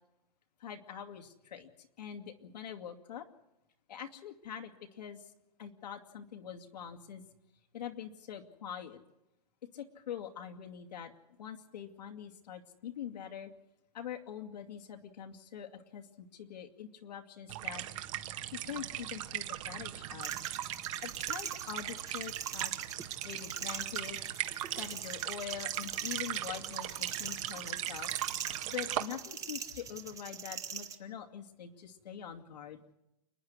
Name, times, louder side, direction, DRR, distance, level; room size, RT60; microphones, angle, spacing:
voice 1, 0.6-3.3 3.9-5.2 5.6-7.2 7.7-9.0 9.7-11.1 11.4-13.5 13.9-17.8 18.6-20.3 21.0-22.7 23.2-24.2 24.8-28.1 28.7-32.8, left 9 dB, 85° left, 3 dB, 2.4 m, -44 dB
sound 1, 17.5-29.0, right 13 dB, 55° right, 1.5 m, -38 dB
sound 2, 20.2-31.0, right 7 dB, 15° right, 1.2 m, -43 dB
29.5 x 9.9 x 9.6 m, 0.90 s
hypercardioid pair, 150°, 21 cm